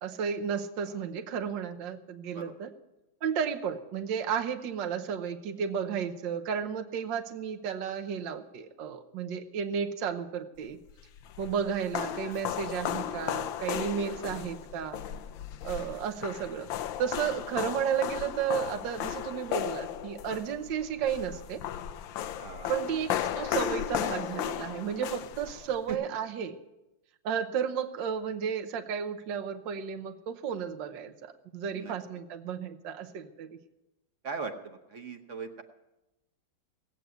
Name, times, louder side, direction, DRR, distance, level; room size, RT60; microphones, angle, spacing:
voice 1, 0.0-2.7 3.2-10.8 11.4-15.0 15.6-16.7 17.0-21.6 22.7-26.6 27.2-33.6, right 7 dB, 75° right, 6 dB, 1.6 m, -33 dB
sound 1, 10.9-25.9, left 10 dB, 90° left, 1.4 m, -35 dB
voice 2, 22.4-22.7 25.9-26.0 31.7-31.9 34.2-35.6, right 5 dB, 45° right, 6 dB, 1.2 m, -39 dB
17.5 x 8.2 x 9.1 m, 0.96 s
omnidirectional pair, 2.0 m